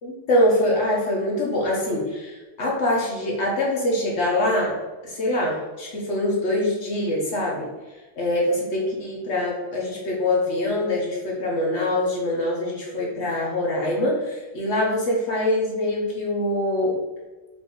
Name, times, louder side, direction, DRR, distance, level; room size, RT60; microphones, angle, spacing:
voice 1, 0.0-4.8 5.0-7.7 8.2-17.0, left 1 dB, 60° left, -3 dB, 0.7 m, -24 dB
3.7 x 2.5 x 3.7 m, 1.2 s
omnidirectional pair, 2.0 m